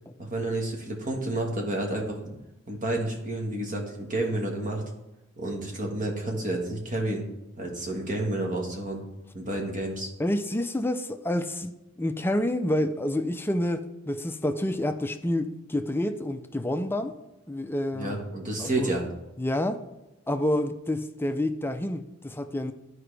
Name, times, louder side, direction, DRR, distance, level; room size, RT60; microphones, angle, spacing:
voice 1, 0.2-2.4 2.7-4.8 5.4-7.2 7.6-9.0 9.3-10.1 17.9-19.1, right 1 dB, 40° right, 1 dB, 1.6 m, -30 dB
voice 2, 10.2-17.2 17.5-18.2 18.6-18.9 19.4-19.8 20.3-22.7, left 1 dB, 10° left, 8 dB, 0.4 m, -28 dB
12.0 x 4.8 x 3.4 m, 0.98 s
head